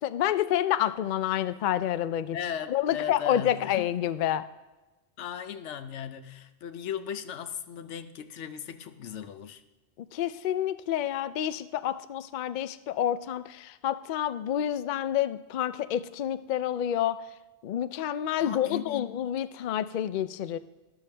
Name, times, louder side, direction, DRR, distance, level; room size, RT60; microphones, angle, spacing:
voice 1, 0.0-2.4 2.7-4.4 10.0-17.2 17.6-20.6, left 11 dB, 60° left, 14 dB, 0.5 m, -28 dB
voice 2, 2.3-3.9 5.2-9.6 18.4-19.2, left 9 dB, 85° left, 11 dB, 1.0 m, -37 dB
12.5 x 12.0 x 3.3 m, 1.1 s
omnidirectional pair, 1.2 m